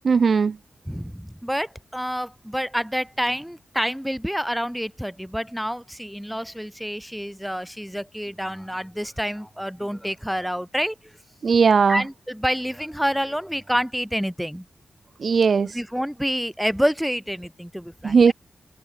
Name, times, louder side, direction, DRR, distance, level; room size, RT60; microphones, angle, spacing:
voice 1, 0.0-0.6 11.4-12.0 15.2-15.8 18.0-18.3, right 5 dB, 65° right, 0.8 m, -18 dB
voice 2, 0.9-10.9 11.9-14.6 15.7-18.3, equal, ahead, 3.3 m, -28 dB
cardioid pair, 50°, 0 cm